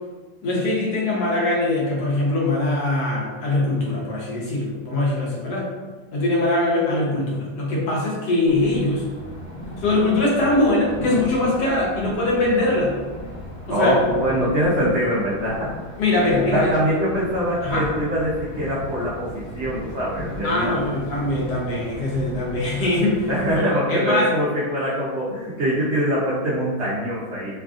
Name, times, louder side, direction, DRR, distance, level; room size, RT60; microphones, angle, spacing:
voice 1, 0.4-5.7 6.1-9.0 9.8-13.0 13.7-14.0 16.0-16.7 17.6-17.8 20.4-23.3 23.5-24.3, left 2 dB, 75° left, -4 dB, 1.2 m, -22 dB
sound 1, 8.5-23.6, equal, 55° left, 1.2 m, -36 dB
voice 2, 13.7-15.7 16.5-20.8 23.3-27.5, equal, 80° right, -8 dB, 0.6 m, -23 dB
3.2 x 2.4 x 2.4 m, 1.4 s
omnidirectional pair, 1.8 m